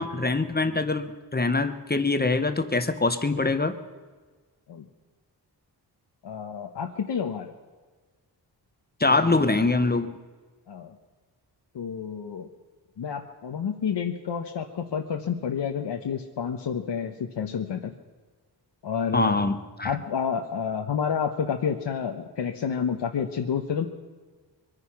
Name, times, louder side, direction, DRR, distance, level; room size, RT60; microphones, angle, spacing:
voice 1, 0.0-3.7 9.0-10.2 19.1-19.9, left 3 dB, 20° left, 9 dB, 1.0 m, -24 dB
voice 2, 6.2-7.5 10.7-10.9 11.7-12.5 13.0-17.9 18.8-19.4 19.8-23.9, left 7 dB, 75° left, 3 dB, 1.0 m, -29 dB
23.0 x 9.9 x 5.9 m, 1.4 s
wide cardioid pair, 95°, 42 cm